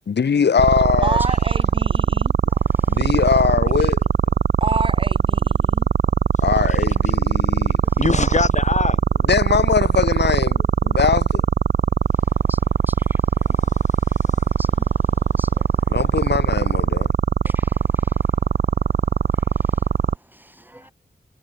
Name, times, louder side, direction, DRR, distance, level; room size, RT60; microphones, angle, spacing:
voice 1, 0.1-1.2 2.9-4.0 6.4-7.8 9.3-11.4 15.9-17.1, left 6 dB, 90° left, 2.9 m, -21 dB
sound 1, 0.6-20.1, right 6 dB, 75° right, 1.3 m, -19 dB
voice 2, 1.0-2.3 4.6-5.9, right 3 dB, 30° right, 1.8 m, -27 dB
voice 3, 2.5-3.1 7.8-8.0 12.5-13.7 14.1-15.0 15.3-15.7 17.4-18.3 19.3-19.8, right 1 dB, 10° right, 2.2 m, -46 dB
voice 4, 8.0-9.3 13.4-13.9 14.2-14.5 15.0-15.6, left 4 dB, 45° left, 4.6 m, -26 dB
wide cardioid pair, 130°, 17 cm